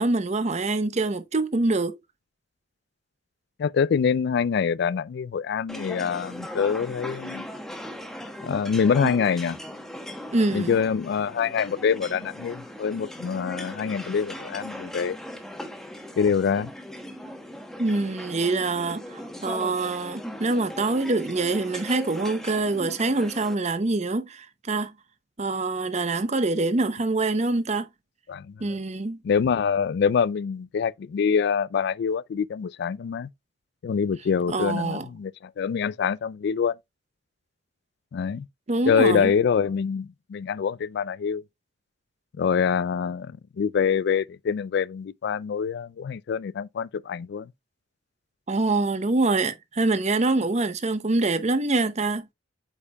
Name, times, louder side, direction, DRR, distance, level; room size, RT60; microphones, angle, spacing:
voice 1, 0.0-2.0 9.0-9.1 10.3-10.7 17.8-24.9 25.4-27.9 28.6-29.2 34.5-35.1 38.7-39.3 48.5-52.3, right 2 dB, 35° right, 0.7 m, -25 dB
voice 2, 3.6-7.5 8.4-9.6 10.5-15.2 16.2-16.7 28.3-28.5 29.2-33.3 33.8-36.7 38.1-38.5 38.9-41.4 42.4-47.5, left 6 dB, 60° left, 0.3 m, -25 dB
sound 1, 5.7-23.5, equal, ahead, 1.0 m, -39 dB
8.2 x 5.3 x 2.3 m
head